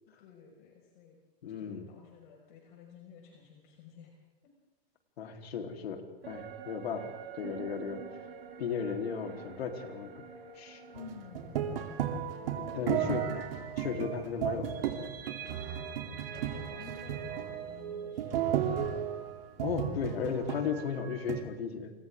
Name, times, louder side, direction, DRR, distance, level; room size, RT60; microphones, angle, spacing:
voice 1, 0.1-1.2 1.6-4.1 4.4-4.5 10.9-11.7 12.4-13.6 15.5-18.9, left 6 dB, 55° left, -1 dB, 5.6 m, -52 dB
voice 2, 1.4-1.9 5.2-6.0 6.3-8.0 8.6-10.1 10.5-10.8 12.7-13.2 13.8-15.0 19.6-21.9, left 6 dB, 85° left, 3 dB, 3.8 m, -35 dB
sound 1, 6.2-15.7 16.1-16.2, right 6 dB, 85° right, 4.1 m, -49 dB
sound 2, 10.9-21.4, right 9 dB, 70° right, 3.3 m, -34 dB
28.5 x 26.5 x 3.8 m, 1.1 s
hypercardioid pair, 150°, 30 cm